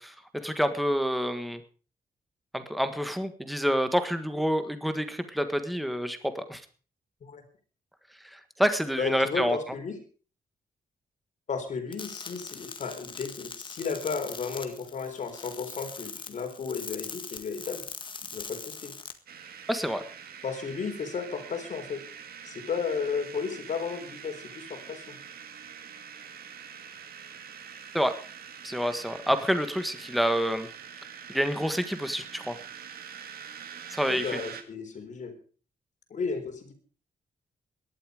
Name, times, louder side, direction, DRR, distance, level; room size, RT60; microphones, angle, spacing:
voice 1, 0.0-1.6 2.5-6.6 8.3-9.6 19.7-20.0 27.9-28.1 28.6-30.7 31.3-32.6 33.9-34.2, equal, ahead, 9 dB, 1.6 m, -28 dB
voice 2, 9.0-10.0 11.5-17.8 18.3-19.0 20.4-22.0 22.4-25.2 34.0-35.3 36.1-36.7, left 5 dB, 55° left, 6 dB, 3.9 m, -34 dB
sound 1, 11.9-19.1, left 5 dB, 30° left, 1.7 m, -42 dB
sound 2, 19.3-34.6, right 7 dB, 85° right, 2.2 m, -45 dB
18.0 x 12.0 x 5.1 m, 0.40 s
wide cardioid pair, 145°, 15 cm